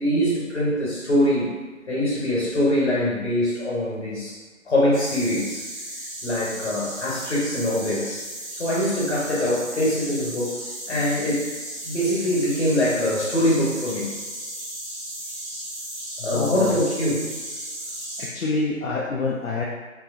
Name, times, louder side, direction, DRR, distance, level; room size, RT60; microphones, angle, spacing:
voice 1, 0.0-1.5 1.9-4.4 4.6-5.7 6.2-8.2 8.5-10.6 10.9-11.5 11.8-14.1 16.2-17.3, left 1 dB, 55° left, -5 dB, 1.1 m, -23 dB
sound 1, 4.9-18.3, right 1 dB, 55° right, 0.9 m, -35 dB
voice 2, 16.2-16.8 18.2-19.6, left 3 dB, 75° left, -3 dB, 0.5 m, -27 dB
3.0 x 2.6 x 2.5 m, 1.3 s
figure-of-eight pair, 175°, 41 cm